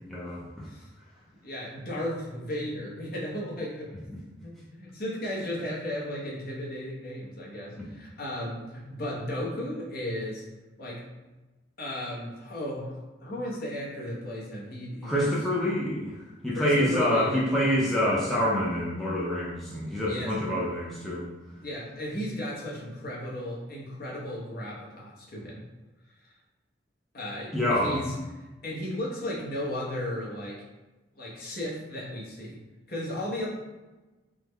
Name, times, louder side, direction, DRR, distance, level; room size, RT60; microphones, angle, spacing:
voice 1, 0.1-0.7 7.8-7.9 15.0-21.3 27.5-28.0, equal, ahead, -8 dB, 0.4 m, -27 dB
voice 2, 1.4-10.4 10.8-11.0 11.8-12.9 13.2-15.3 16.5-17.4 20.0-20.3 21.6-25.6 27.1-28.1 28.6-30.6 31.2-32.6 32.9-33.5, left 1 dB, 50° left, -4 dB, 0.8 m, -35 dB
3.5 x 2.1 x 3.3 m, 1.1 s
head